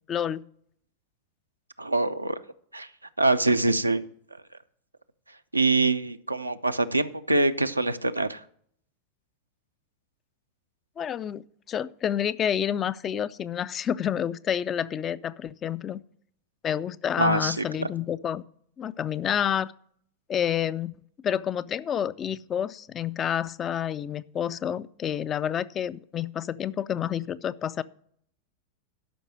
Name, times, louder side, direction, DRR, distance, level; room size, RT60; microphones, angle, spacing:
voice 1, 0.1-0.4 11.0-16.0 16.6-18.4 18.8-19.7 20.3-27.8, left 9 dB, 25° left, 16 dB, 0.4 m, -29 dB
voice 2, 1.8-2.4 2.7-2.9 3.2-4.0 5.5-8.4 17.2-17.9, right 2 dB, 85° right, 9 dB, 0.5 m, -24 dB
12.0 x 5.4 x 6.1 m, 0.63 s
figure-of-eight pair, 90°, 0 cm